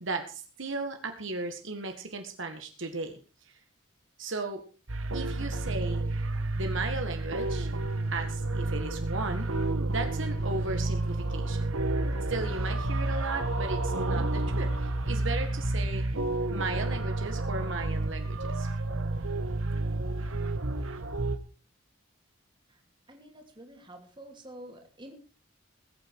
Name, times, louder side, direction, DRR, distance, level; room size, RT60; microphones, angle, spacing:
voice 1, 0.0-3.2 4.2-4.6 5.1-6.0 6.5-7.7 8.1-9.5 9.9-11.7 12.3-16.1 16.5-18.7, right 3 dB, 60° right, 5 dB, 1.9 m, -36 dB
sound 1, 4.9-21.4, right 2 dB, 80° right, 1.5 m, -30 dB
voice 2, 23.1-25.1, right 1 dB, 25° right, 3 dB, 3.0 m, -48 dB
20.5 x 8.8 x 4.8 m, 0.34 s
head